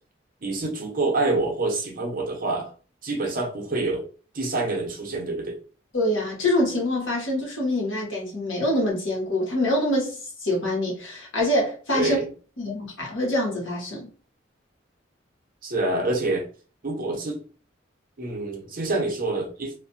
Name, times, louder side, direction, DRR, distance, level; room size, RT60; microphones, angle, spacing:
voice 1, 0.4-2.7 3.0-4.0 4.3-5.6 11.9-12.2 15.6-16.5 16.8-17.4 18.2-19.7, right 2 dB, 45° right, 0.7 m, -26 dB
voice 2, 5.9-10.2 10.4-12.2 12.6-14.1, left 1 dB, 70° left, 1.1 m, -25 dB
2.4 x 2.2 x 2.6 m
head